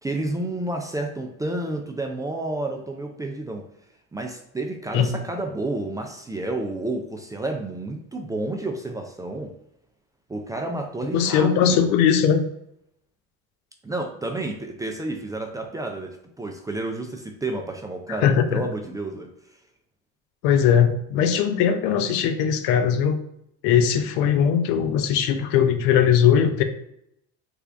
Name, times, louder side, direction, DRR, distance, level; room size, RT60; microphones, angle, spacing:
voice 1, 0.0-3.6 4.1-9.5 10.3-12.0 13.8-19.3, right 2 dB, 10° right, 2 dB, 0.3 m, -30 dB
voice 2, 11.1-12.4 18.1-18.6 20.4-23.2 23.6-26.6, left 8 dB, 75° left, 8 dB, 0.6 m, -20 dB
3.4 x 2.3 x 3.4 m, 0.77 s
supercardioid pair, 100°, 35 cm